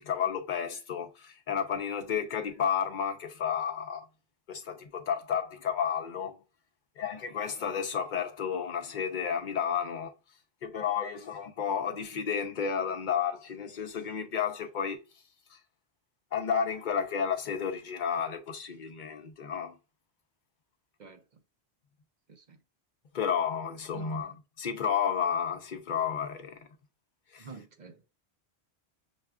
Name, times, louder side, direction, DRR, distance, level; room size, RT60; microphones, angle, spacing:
voice 1, 0.0-4.1 4.5-6.3 7.0-10.1 10.6-15.0 15.5-15.6 16.3-19.7 23.1-26.6 27.3-27.5, left 7 dB, 50° left, 0.8 m, -32 dB
voice 2, 21.0-21.4 22.3-22.6 23.9-24.3 27.4-28.0, right 5 dB, 50° right, 0.7 m, -49 dB
6.1 x 2.3 x 2.3 m
omnidirectional pair, 1.1 m